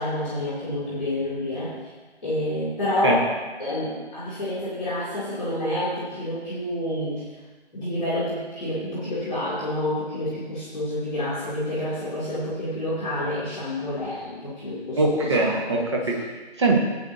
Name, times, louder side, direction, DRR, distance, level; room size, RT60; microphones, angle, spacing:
voice 1, 0.0-1.8 2.2-3.3 3.6-7.2 7.7-15.8, left 1 dB, ahead, -23 dB, 0.7 m, -28 dB
voice 2, 15.0-16.8, right 2 dB, 25° right, 0 dB, 1.3 m, -22 dB
17.0 x 8.8 x 2.7 m, 1.3 s
figure-of-eight pair, 155°, 33 cm